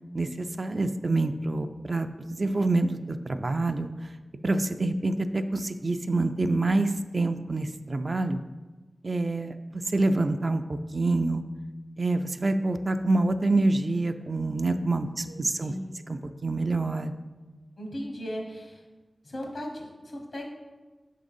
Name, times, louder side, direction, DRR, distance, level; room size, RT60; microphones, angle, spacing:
voice 1, 0.1-3.9 4.4-8.4 9.0-9.6 9.9-11.4 12.0-15.7 16.1-17.1, right 2 dB, 50° right, 8 dB, 0.3 m, -26 dB
voice 2, 15.0-15.3 15.6-15.8 17.8-18.8 19.2-20.4, equal, 80° left, 1 dB, 1.0 m, -37 dB
5.1 x 3.7 x 5.3 m, 1.3 s
wide cardioid pair, 70°, 0 cm